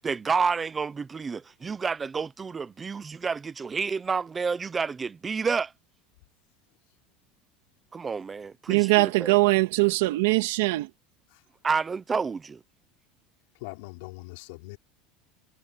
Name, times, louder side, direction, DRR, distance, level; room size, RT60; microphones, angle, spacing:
voice 1, 0.0-5.7 7.9-9.4 11.6-12.6, right 5 dB, 15° right, 0.8 m, -29 dB
voice 2, 8.7-10.9, right 23 dB, 80° right, 2.3 m, -22 dB
voice 3, 13.6-14.8, left 24 dB, 70° left, 4.6 m, -41 dB
supercardioid pair, 150°, 0 cm